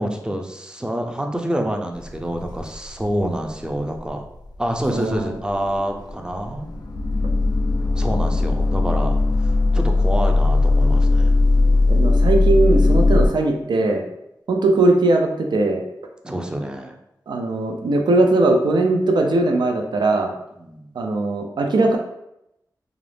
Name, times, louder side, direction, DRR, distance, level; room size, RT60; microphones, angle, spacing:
voice 1, 0.0-4.2 4.6-6.7 7.9-9.2 9.4-11.4 16.2-16.9 20.6-20.9, right 1 dB, 10° right, 3 dB, 0.4 m, -27 dB
sound 1, 2.1-2.7 3.0-3.3 3.7-3.8 4.1-4.2 4.9-13.3, left 3 dB, 65° left, 0.4 m, -18 dB
voice 2, 4.9-5.3 11.9-14.0 14.5-15.8 17.3-20.3 21.0-22.0, right 2 dB, 75° right, 3 dB, 0.4 m, -19 dB
2.4 x 2.0 x 3.2 m, 0.83 s
wide cardioid pair, 65°, 8 cm